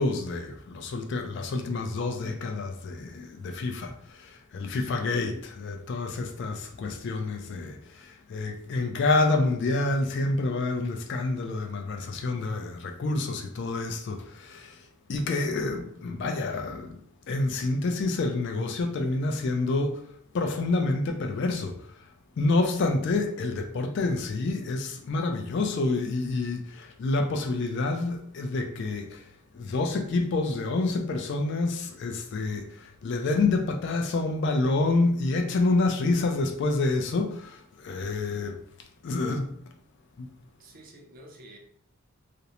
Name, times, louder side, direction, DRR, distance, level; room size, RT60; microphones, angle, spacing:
voice 1, 0.0-17.0 17.3-22.0 22.4-39.6 40.2-40.3, left 3 dB, 55° left, 0.3 m, -28 dB
voice 2, 4.7-5.1 40.6-41.6, right 1 dB, 40° right, 0.4 m, -50 dB
2.5 x 2.0 x 2.8 m
head